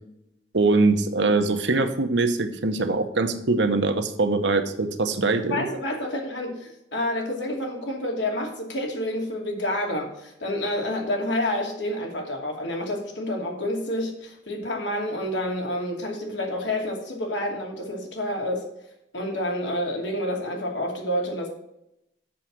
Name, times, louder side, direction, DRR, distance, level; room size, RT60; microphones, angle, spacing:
voice 1, 0.5-5.7, right 3 dB, 85° right, 7 dB, 1.0 m, -22 dB
voice 2, 5.5-18.6 19.1-21.5, left 1 dB, 90° left, 0 dB, 2.5 m, -29 dB
7.5 x 6.3 x 6.0 m, 0.83 s
head